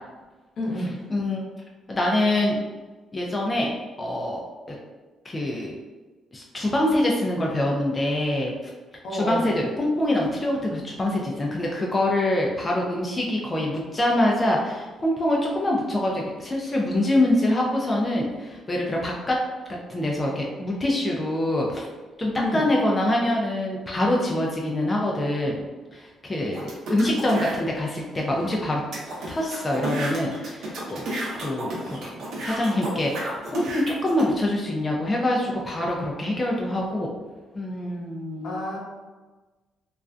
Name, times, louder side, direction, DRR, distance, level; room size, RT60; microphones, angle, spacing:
voice 1, 0.6-1.0 9.0-9.7 22.4-22.7 38.4-38.8, left 1 dB, 70° left, -3 dB, 0.7 m, -29 dB
voice 2, 1.1-1.5 1.9-2.6 3.1-3.7 4.0-4.4 4.7-4.8 5.2-5.8 6.3-8.6 9.1-19.4 19.7-21.9 22.2-25.6 25.9-28.8 29.3-31.1 31.3-32.1 32.4-37.1 37.5-38.6, left 1 dB, 25° left, -2 dB, 0.4 m, -25 dB
sound 1, 26.5-27.6 28.2-28.3 28.5-28.6 28.9-34.2, right 1 dB, 70° right, 0.7 m, -32 dB
2.4 x 2.1 x 2.4 m, 1.3 s
cardioid pair, 90°, 0 cm